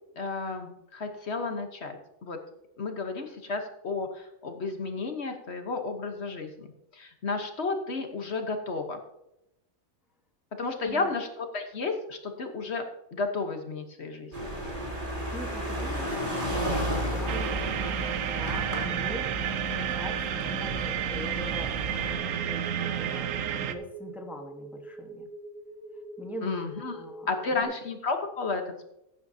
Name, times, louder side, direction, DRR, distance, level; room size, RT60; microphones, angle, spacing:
voice 1, 0.2-2.4 2.8-6.7 6.9-9.0 10.6-12.8 13.1-14.5 26.4-27.0 27.3-28.8, left 3 dB, 55° left, 5 dB, 1.3 m, -32 dB
voice 2, 10.8-11.1 15.0-23.3 23.6-25.3 26.2-27.7, equal, ahead, 3 dB, 1.1 m, -43 dB
sound 1, 14.3-22.2, equal, 35° right, 3.0 m, -33 dB
sound 2, 17.3-23.7, right 9 dB, 75° right, 1.1 m, -31 dB
sound 3, 22.0-27.6, right 2 dB, 90° left, 2.3 m, -44 dB
15.0 x 9.3 x 2.7 m, 0.84 s
omnidirectional pair, 1.4 m